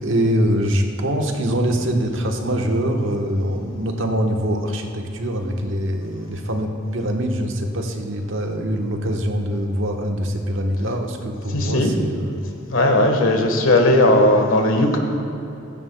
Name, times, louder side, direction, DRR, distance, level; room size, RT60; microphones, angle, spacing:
voice 1, 0.0-12.4, equal, 75° right, 3 dB, 1.2 m, -23 dB
voice 2, 11.5-11.9 12.7-15.0, left 1 dB, 90° left, 3 dB, 1.4 m, -16 dB
15.5 x 13.5 x 2.3 m, 2.8 s
head